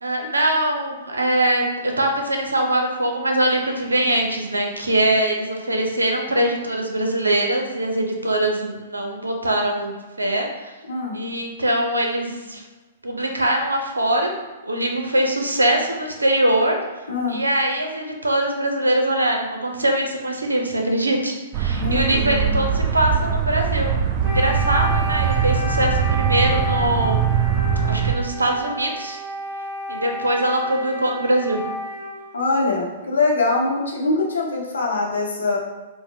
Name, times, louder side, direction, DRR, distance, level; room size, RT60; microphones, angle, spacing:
voice 1, 0.0-9.9 10.2-10.7 11.1-12.6 13.0-14.3 14.6-16.8 17.3-27.3 27.9-29.2 29.9-31.6, right 1 dB, 80° right, 2 dB, 0.5 m, -22 dB
voice 2, 17.1-17.4 21.7-22.6 32.3-35.6, left 3 dB, 75° left, -3 dB, 0.9 m, -23 dB
sound 1, 21.5-28.2, right 7 dB, 35° right, 0.3 m, -22 dB
Wind instrument woodwind instrument, 24.2-32.2, equal, 15° right, 0.9 m, -31 dB
4.0 x 2.0 x 3.3 m, 1.2 s
figure-of-eight pair, 110°, 0 cm